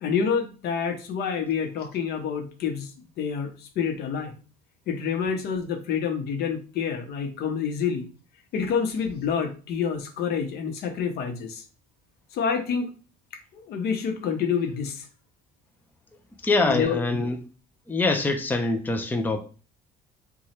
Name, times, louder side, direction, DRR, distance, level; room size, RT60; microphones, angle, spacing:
voice 1, 0.0-2.9 3.2-4.3 4.9-8.1 8.5-11.6 12.3-12.9 13.5-15.1 16.6-17.3, left 6 dB, 70° left, 0.9 m, -28 dB
voice 2, 16.4-17.4 17.9-19.4, left 3 dB, 10° left, 0.5 m, -24 dB
3.0 x 2.3 x 4.3 m
cardioid pair, 110°, 17 cm